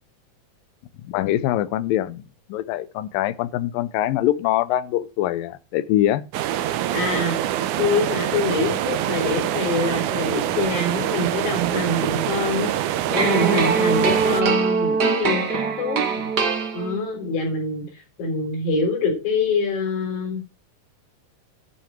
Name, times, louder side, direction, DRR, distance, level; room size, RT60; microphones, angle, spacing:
voice 1, 1.0-2.2 2.5-6.2, left 13 dB, 90° left, 2.5 m, -23 dB
sound 1, 6.3-14.4, right 12 dB, 75° right, 2.1 m, -25 dB
voice 2, 6.9-7.4 7.8-12.7 13.1-16.3 16.7-17.9 18.2-20.4, left 3 dB, 65° left, 5.7 m, -25 dB
sound 2, 13.1-17.2, right 5 dB, 40° right, 1.5 m, -22 dB
11.5 x 5.9 x 7.5 m
omnidirectional pair, 3.9 m